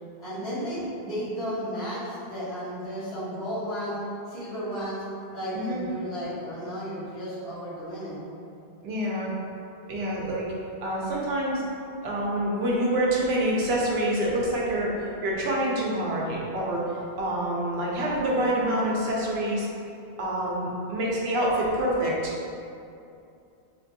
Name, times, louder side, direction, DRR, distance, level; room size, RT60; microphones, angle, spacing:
voice 1, 0.2-4.0 4.3-5.0 5.3-8.2, equal, 75° left, -12 dB, 1.5 m, -33 dB
voice 2, 5.5-5.9 8.8-9.3 9.9-10.5 10.8-11.6 12.0-16.8 17.2-19.7 20.2-22.3, right 1 dB, 80° right, -4 dB, 0.9 m, -26 dB
3.9 x 2.5 x 2.6 m, 2.6 s
omnidirectional pair, 1.1 m